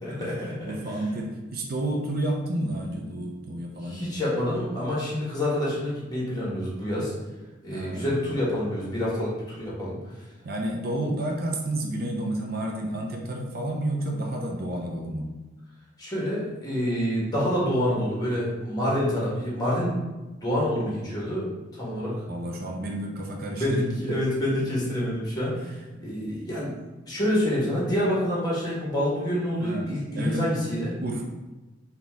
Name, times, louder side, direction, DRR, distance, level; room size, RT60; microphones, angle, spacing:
voice 1, 0.0-0.7 3.8-7.1 7.6-10.0 16.0-20.0 20.4-21.5 21.7-22.2 23.4-26.7 27.1-30.9, equal, 20° left, -6 dB, 1.4 m, -27 dB
voice 2, 0.6-4.1 7.7-8.1 10.4-15.3 22.3-23.6 24.1-24.2 25.9-26.0 29.6-29.9 30.1-30.6 31.0-31.2, right 1 dB, 55° right, 1 dB, 0.6 m, -30 dB
4.1 x 2.8 x 3.5 m, 1.2 s
head